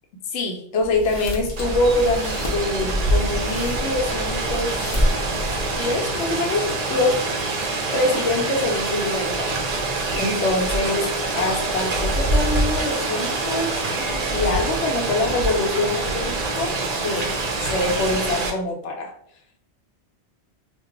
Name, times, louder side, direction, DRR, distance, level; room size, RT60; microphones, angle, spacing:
voice 1, 0.3-4.8 5.7-7.2 7.9-9.6 10.2-16.8 17.0-17.3 17.6-19.1, left 2 dB, 80° left, 2 dB, 0.9 m, -24 dB
sound 1, 0.8-6.0, left 1 dB, 45° left, 0.4 m, -29 dB
Rain, 1.6-18.5, right 2 dB, 55° right, 0.4 m, -25 dB
2.2 x 2.0 x 3.7 m, 0.67 s
omnidirectional pair, 1.2 m